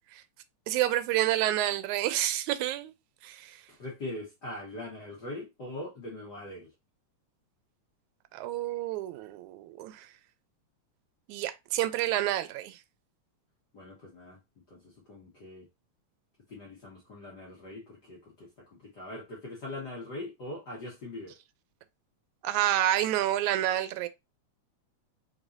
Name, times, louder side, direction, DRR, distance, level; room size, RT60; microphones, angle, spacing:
voice 1, 0.7-2.9 3.2-3.6 8.3-10.1 11.3-12.8 22.4-24.1, right 13 dB, 85° right, 2.0 m, -29 dB
voice 2, 3.7-6.7 13.7-14.4 14.7-15.7 16.5-21.4, left 1 dB, 55° left, 1.2 m, -42 dB
4.9 x 3.8 x 2.5 m
omnidirectional pair, 3.3 m